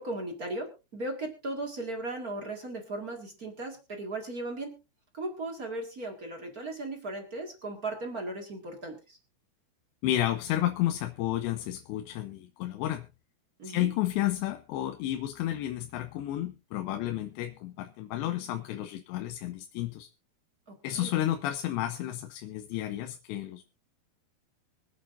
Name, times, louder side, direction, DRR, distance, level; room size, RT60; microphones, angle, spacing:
voice 1, 0.0-4.7 5.1-9.2 13.6-13.9 20.7-21.1, right 2 dB, 40° right, 2 dB, 1.2 m, -37 dB
voice 2, 10.0-13.1 13.6-20.1 20.8-23.6, left 13 dB, 90° left, 7 dB, 3.0 m, -31 dB
25.0 x 8.6 x 2.6 m, 0.30 s
omnidirectional pair, 4.9 m